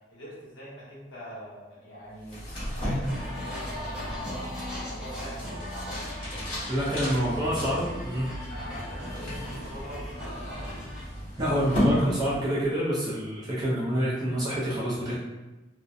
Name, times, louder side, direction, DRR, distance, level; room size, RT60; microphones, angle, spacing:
voice 1, 0.1-2.5 2.7-7.7 8.5-10.8, equal, 85° left, -7 dB, 1.0 m, -43 dB
sound 1, 2.2-12.8, equal, 45° left, 1.2 m, -34 dB
sound 2, 3.0-11.0, left 1 dB, 5° right, 1.0 m, -39 dB
voice 2, 6.7-8.4 11.4-15.1, equal, 20° right, -8 dB, 0.5 m, -27 dB
2.6 x 2.0 x 2.4 m, 1.1 s
head